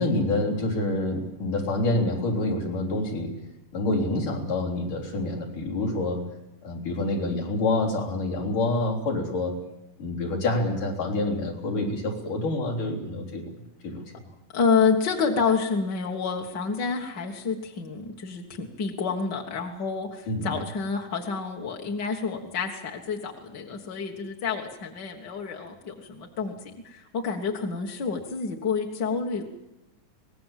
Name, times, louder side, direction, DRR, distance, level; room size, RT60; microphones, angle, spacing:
voice 1, 0.0-3.3 3.7-6.2 6.6-9.6 10.0-13.5 13.8-14.2 20.3-20.6, left 2 dB, 65° left, 0 dB, 5.2 m, -27 dB
voice 2, 14.5-29.4, left 5 dB, 45° left, 0 dB, 1.5 m, -28 dB
24.5 x 19.5 x 7.5 m, 0.93 s
omnidirectional pair, 3.8 m